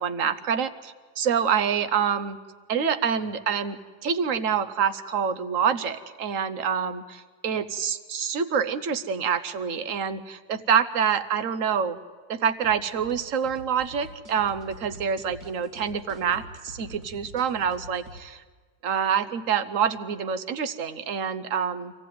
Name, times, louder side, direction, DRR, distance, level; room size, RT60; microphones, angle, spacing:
voice 1, 0.0-2.4 2.7-12.0 12.3-18.4 18.8-21.9, right 7 dB, 60° right, 12 dB, 1.1 m, -26 dB
sound 1, 12.6-18.2, right 1 dB, 40° right, 1.9 m, -45 dB
25.5 x 15.0 x 9.3 m, 1.4 s
omnidirectional pair, 1.7 m